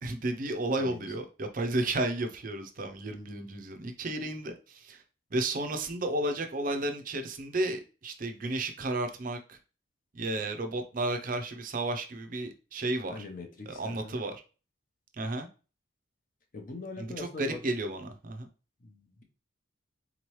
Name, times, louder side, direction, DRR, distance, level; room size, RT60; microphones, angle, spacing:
voice 1, 0.0-5.0 5.3-9.6 10.1-13.2 13.8-14.4 15.2-15.5 17.0-18.5, right 2 dB, 40° right, 0.5 m, -32 dB
voice 2, 0.8-1.1 13.1-14.2 16.5-17.6 18.8-19.2, left 3 dB, 40° left, 0.7 m, -43 dB
3.9 x 3.0 x 3.0 m
head